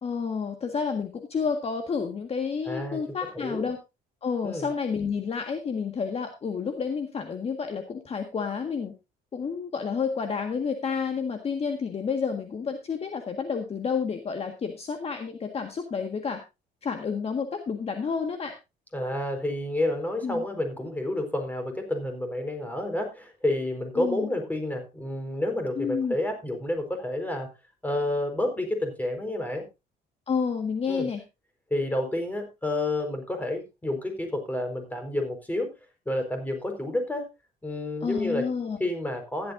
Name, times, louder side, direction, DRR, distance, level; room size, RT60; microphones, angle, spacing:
voice 1, 0.0-3.8 4.2-8.9 9.3-16.4 16.8-18.5 20.2-20.4 24.0-24.3 25.7-26.2 30.3-31.2 38.0-38.8, left 6 dB, 35° left, 5 dB, 1.7 m, -30 dB
voice 2, 2.7-3.0 3.3-3.7 4.4-4.7 18.9-27.5 27.8-29.6 30.9-31.1 31.7-35.7 36.1-37.3 37.6-38.4 38.8-39.5, left 1 dB, 10° left, 5 dB, 4.5 m, -29 dB
15.0 x 11.5 x 2.7 m, 0.26 s
cardioid pair, 110°, 17 cm